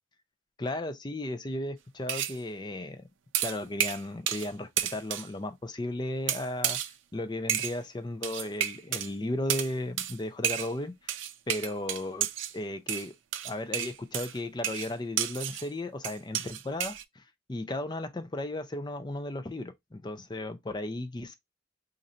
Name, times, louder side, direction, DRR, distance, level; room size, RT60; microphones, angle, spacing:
voice 1, 0.6-3.1 3.4-6.8 7.1-11.1 11.5-12.3 12.5-13.1 13.4-17.2 17.5-21.4, left 1 dB, 20° left, 0.4 m, -35 dB
sound 1, 2.1-2.4 3.3-4.5 4.8-5.3 6.3-6.9 7.5-7.8 8.2-9.1 9.5-9.7 10.0-10.2 10.4-10.7 11.1-12.5 12.9-15.7 16.0-17.0, right 10 dB, 85° right, 0.4 m, -31 dB
2.7 x 2.5 x 4.2 m
head